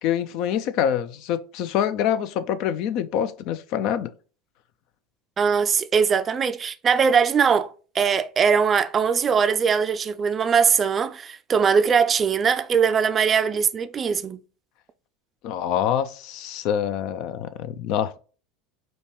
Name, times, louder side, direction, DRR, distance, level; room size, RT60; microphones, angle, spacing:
voice 1, 0.0-4.1 15.4-18.2, left 9 dB, 55° left, 0.4 m, -25 dB
voice 2, 5.4-14.4, right 6 dB, 30° right, 0.4 m, -21 dB
5.1 x 2.2 x 3.0 m
figure-of-eight pair, 75°, 0 cm